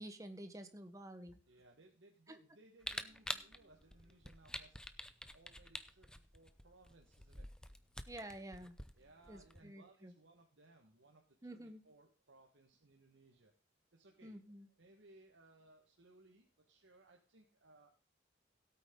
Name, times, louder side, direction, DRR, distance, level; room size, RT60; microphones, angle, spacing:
voice 1, 0.0-1.4 2.3-2.4 8.1-8.8 9.3-10.1 11.4-11.9 14.2-14.7, right 1 dB, 15° right, 9 dB, 1.1 m, -50 dB
voice 2, 1.5-7.5 8.0-8.1 8.9-13.5 13.9-14.4 14.8-17.9, right 2 dB, 85° right, 1 dB, 1.5 m, -65 dB
Camera, 2.8-9.6, left 1 dB, 5° left, 0.6 m, -47 dB
sound 1, 3.0-4.2 4.8-6.5 6.8-9.5, right 1 dB, 35° right, 5.1 m, -77 dB
17.0 x 8.7 x 3.8 m, 0.36 s
head